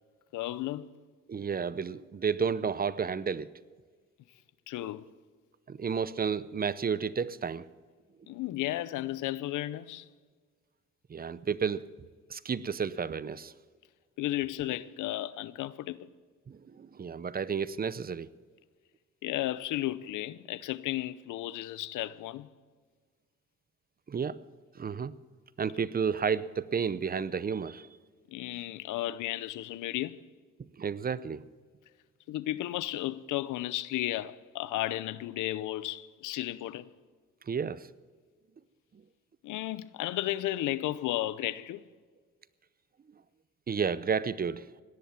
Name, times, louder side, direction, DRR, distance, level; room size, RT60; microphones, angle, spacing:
voice 1, 0.3-0.9 4.7-5.1 8.3-10.1 14.2-16.1 19.2-22.5 28.3-30.2 32.3-36.9 39.4-41.8, left 15 dB, 85° left, 0.7 m, -34 dB
voice 2, 1.3-3.5 4.8-4.9 5.7-7.6 11.1-11.8 12.3-13.5 16.5-18.3 24.1-24.4 24.8-25.1 25.6-27.9 30.8-31.4 37.5-37.9 43.7-44.6, right 6 dB, 30° right, 0.7 m, -31 dB
18.0 x 11.0 x 5.9 m
cardioid pair, 90°, 30 cm